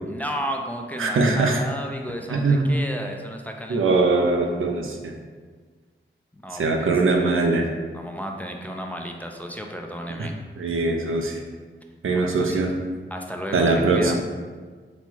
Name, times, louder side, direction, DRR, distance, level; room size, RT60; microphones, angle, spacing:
voice 1, 0.0-4.0 6.3-7.4 7.9-10.4 12.1-12.6 13.1-14.1, equal, 5° left, 2 dB, 0.4 m, -33 dB
voice 2, 1.0-1.6 2.3-2.7 3.7-5.0 6.5-7.7 10.2-10.3 10.6-11.4 12.0-12.7 13.5-14.1, right 3 dB, 80° right, 2 dB, 0.5 m, -21 dB
4.2 x 2.3 x 4.4 m, 1.5 s
wide cardioid pair, 70°, 21 cm